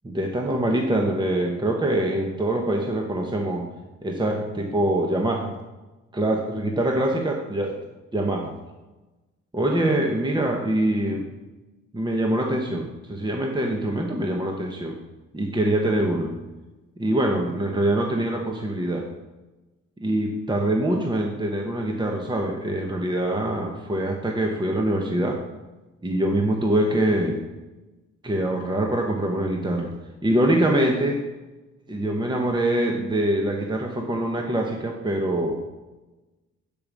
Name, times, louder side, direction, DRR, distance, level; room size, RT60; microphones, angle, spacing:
voice 1, 0.0-3.7 4.0-5.5 6.1-7.8 8.1-8.5 9.5-11.3 11.9-15.0 15.3-16.3 17.0-19.1 20.0-25.4 26.0-27.4 28.2-29.9 30.2-31.2 31.9-35.6, right 1 dB, 15° right, 1 dB, 1.2 m, -24 dB
9.3 x 5.3 x 6.2 m, 1.1 s
cardioid pair, 90°, 30 cm